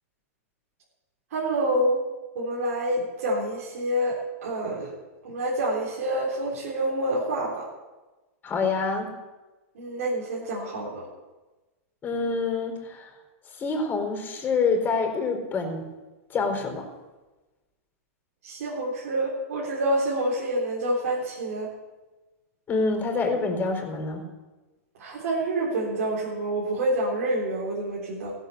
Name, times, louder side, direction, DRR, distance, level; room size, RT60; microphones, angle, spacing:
voice 1, 1.3-2.0 2.4-4.9 5.2-7.6 9.8-11.1 18.4-21.7 25.0-28.3, right 1 dB, 75° right, -5 dB, 3.8 m, -27 dB
voice 2, 8.4-9.1 12.0-13.1 13.6-15.8 16.3-16.9 22.7-24.2, left 4 dB, 20° left, 3 dB, 4.3 m, -26 dB
16.5 x 8.1 x 7.0 m, 1.1 s
hypercardioid pair, 130°, 8 cm